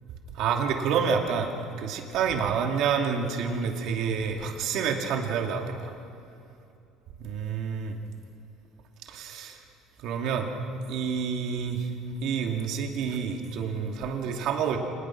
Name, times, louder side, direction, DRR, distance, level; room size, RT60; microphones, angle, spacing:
voice 1, 0.3-5.9 7.2-8.0 9.1-9.6 10.0-10.5 10.9-11.9 12.2-14.8, right 6 dB, 60° right, 3 dB, 2.7 m, -28 dB
27.0 x 19.5 x 6.1 m, 2.7 s
cardioid pair, 140°, 0 cm